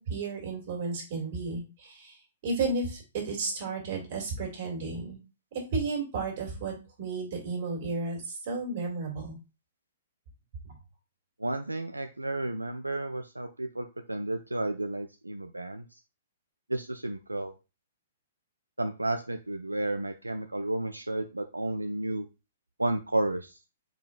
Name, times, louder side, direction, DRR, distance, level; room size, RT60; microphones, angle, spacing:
voice 1, 0.0-2.2 2.4-5.2 5.5-9.4, right 3 dB, 45° right, 0 dB, 2.3 m, -33 dB
voice 2, 11.4-16.0 16.7-17.5 18.8-22.3 22.8-23.6, right 2 dB, 85° right, 7 dB, 0.3 m, -32 dB
4.9 x 3.7 x 2.4 m, 0.29 s
figure-of-eight pair, 115°, 0 cm